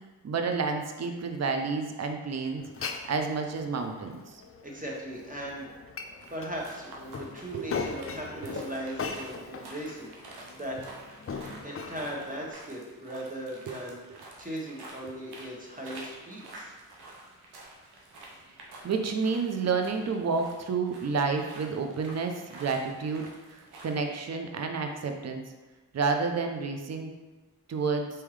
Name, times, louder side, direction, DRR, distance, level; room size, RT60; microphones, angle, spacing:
voice 1, 0.2-2.6 3.1-4.4 7.5-7.7 13.7-13.8 18.8-25.4 25.9-27.1 27.7-28.1, right 4 dB, 45° right, 4 dB, 0.7 m, -30 dB
Glass, 2.6-12.5, left 5 dB, 35° left, 0.5 m, -40 dB
voice 2, 4.6-5.7 6.1-10.8 11.6-16.7, right 1 dB, 20° right, -2 dB, 1.4 m, -38 dB
sound 1, 6.2-24.0, right 2 dB, 90° right, 0.8 m, -49 dB
4.5 x 3.5 x 3.3 m, 1.2 s
supercardioid pair, 40°, 38 cm